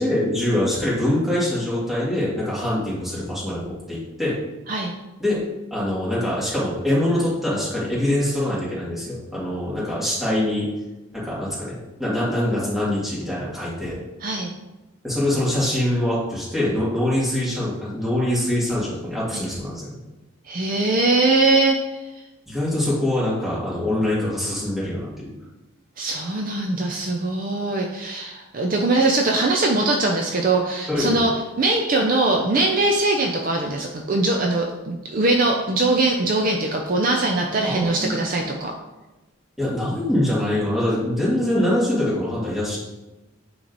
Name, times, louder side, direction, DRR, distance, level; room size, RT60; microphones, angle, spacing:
voice 1, 0.0-4.4 5.2-5.4 5.7-10.7 11.1-14.0 15.0-19.9 22.5-25.3 30.9-31.3 37.6-38.5 39.6-42.8, left 1 dB, ahead, -9 dB, 2.3 m, -24 dB
voice 2, 20.5-21.8 26.0-31.3 31.6-38.7, right 2 dB, 45° right, 1 dB, 0.6 m, -21 dB
9.1 x 3.1 x 4.0 m, 1.1 s
head